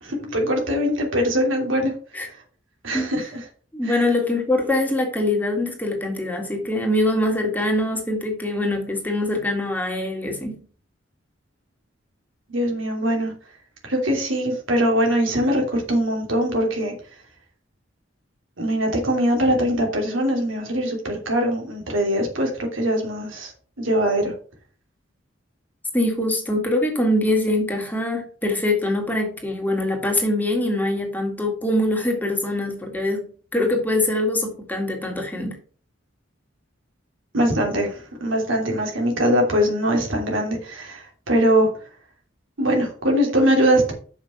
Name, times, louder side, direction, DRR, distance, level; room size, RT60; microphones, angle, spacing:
voice 1, 0.0-1.9 2.3-2.4 2.8-3.4 3.8-4.0 12.5-13.3 13.8-16.9 18.6-24.3 37.3-41.7 42.6-43.9, equal, 85° right, 2.9 m, -22 dB
voice 2, 3.7-10.6 25.9-35.6, left 1 dB, 10° left, 1.9 m, -23 dB
6.6 x 5.5 x 5.7 m
head